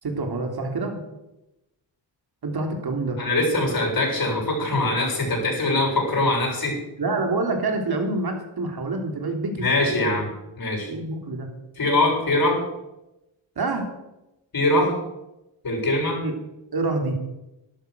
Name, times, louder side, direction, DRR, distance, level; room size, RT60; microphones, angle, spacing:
voice 1, 0.0-1.0 2.4-3.2 7.0-10.0 10.9-11.5 13.5-13.9 16.2-16.3 16.7-17.2, right 3 dB, 55° right, 4 dB, 3.5 m, -27 dB
voice 2, 3.2-6.8 9.6-10.9 11.8-12.6 14.5-15.0 15.6-16.2, left 2 dB, 50° left, 0 dB, 7.1 m, -22 dB
12.0 x 11.5 x 6.7 m, 0.94 s
cardioid pair, 65°, 44 cm